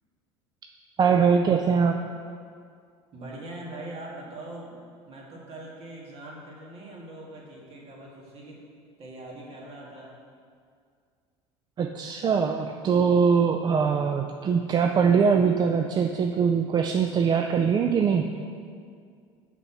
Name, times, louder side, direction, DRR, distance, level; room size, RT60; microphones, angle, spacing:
voice 1, 1.0-2.0 11.8-18.3, right 6 dB, 30° right, 5 dB, 0.4 m, -22 dB
voice 2, 3.1-8.7 9.0-10.1, right 1 dB, 45° right, -3 dB, 1.9 m, -42 dB
6.8 x 4.2 x 5.8 m, 2.2 s
supercardioid pair, 90°, 14 cm